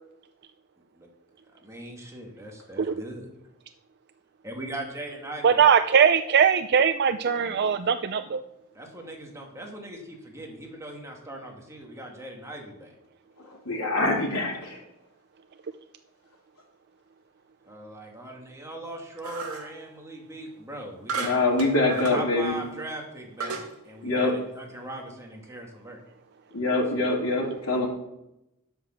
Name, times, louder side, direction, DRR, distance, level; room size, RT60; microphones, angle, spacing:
voice 1, 1.6-3.3 4.4-5.7 8.7-12.9 17.7-21.4 21.8-23.6 23.9-26.0, right 1 dB, 15° right, 0 dB, 2.0 m, -39 dB
voice 2, 5.4-8.4, right 7 dB, 50° right, 9 dB, 0.4 m, -20 dB
voice 3, 13.6-14.8 21.1-22.6 24.0-24.3 26.5-27.9, left 2 dB, 90° left, -3 dB, 3.3 m, -24 dB
sound 1, 19.2-19.8 21.1-22.2 22.8-22.9 23.4-23.7, right 4 dB, 90° right, 1.9 m, -34 dB
9.6 x 8.2 x 6.5 m, 0.87 s
head